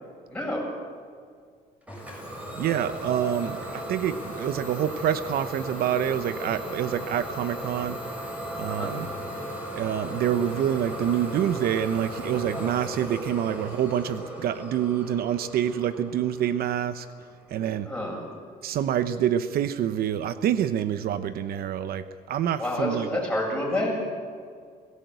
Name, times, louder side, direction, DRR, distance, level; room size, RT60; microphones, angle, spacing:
voice 1, 0.3-0.7 8.7-8.9 17.8-18.2 22.6-23.9, left 1 dB, 5° left, -2 dB, 7.9 m, -28 dB
Idling / Domestic sounds home sounds, 1.9-17.4, equal, 10° right, 7.6 m, -36 dB
voice 2, 2.6-8.0 8.6-9.1 9.7-17.1 17.5-17.9 18.6-23.1, right 10 dB, 70° right, 12 dB, 0.9 m, -27 dB
21.5 x 17.5 x 8.2 m, 2.1 s
cardioid pair, 115°, 16 cm